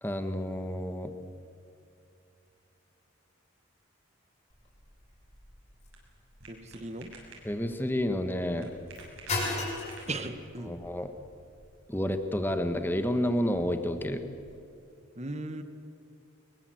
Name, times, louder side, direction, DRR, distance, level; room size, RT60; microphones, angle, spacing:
voice 1, 0.0-1.1 7.4-8.7 10.6-11.1 11.9-14.2, left 1 dB, 10° left, 7 dB, 1.4 m, -30 dB
sound 1, 4.5-14.6, left 2 dB, 30° left, 6.6 m, -41 dB
sound 2, 5.0-10.6, right 3 dB, 85° right, 6.9 m, -52 dB
voice 2, 6.5-7.1 10.1-10.7 15.2-15.6, right 2 dB, 30° right, 9 dB, 1.6 m, -37 dB
23.5 x 22.5 x 7.9 m, 2.6 s
head